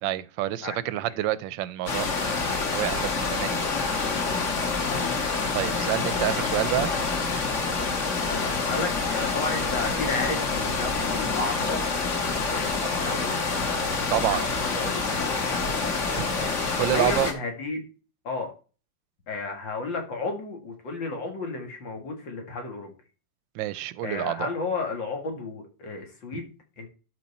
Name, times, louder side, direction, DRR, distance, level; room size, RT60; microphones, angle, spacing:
voice 1, 0.0-2.4 2.7-3.6 5.5-6.9 14.1-14.4 16.1-16.3 16.8-17.3 23.5-24.5, right 14 dB, 85° right, 1.3 m, -28 dB
voice 2, 0.6-1.2 4.9-5.4 5.7-6.8 8.3-11.8 12.5-13.6 14.3-15.8 16.4-17.8 18.2-18.5 19.3-22.9 24.0-26.9, left 3 dB, 85° left, 2.9 m, -33 dB
sound 1, 1.9-17.3, left 4 dB, 45° left, 1.6 m, -27 dB
12.5 x 4.8 x 4.2 m
omnidirectional pair, 2.0 m